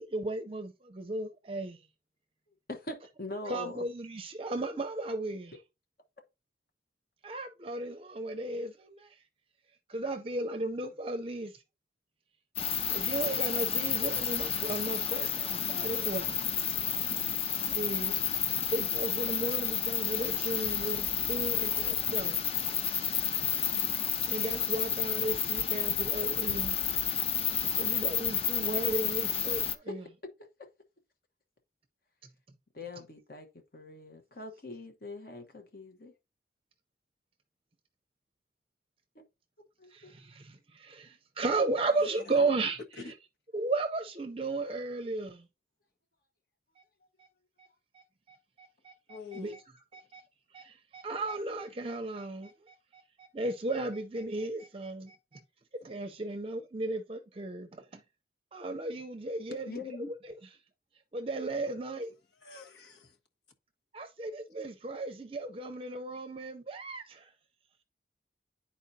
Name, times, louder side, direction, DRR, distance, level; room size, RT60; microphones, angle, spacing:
voice 1, 0.0-1.8 3.5-5.5 7.2-9.2 9.9-11.6 12.9-16.4 17.5-18.2 18.7-22.4 24.3-26.8 27.7-30.0 39.9-42.8 43.5-45.4 47.2-47.3 47.6-47.7 47.9-49.6 49.9-50.2 50.5-55.2 55.7-58.0 58.5-59.8 61.1-62.1 63.9-67.3, right 2 dB, 30° right, 0.5 m, -35 dB
voice 2, 2.7-3.8 30.4-30.7 32.7-33.5 33.7-36.1 39.8-40.1 59.7-60.1, left 2 dB, 55° left, 1.0 m, -42 dB
sound 1, 12.6-29.8, left 8 dB, 35° left, 0.5 m, -31 dB
voice 3, 42.0-42.5 42.9-43.1 49.1-49.6 62.3-63.2, left 5 dB, 75° left, 1.3 m, -46 dB
10.5 x 4.3 x 2.7 m
head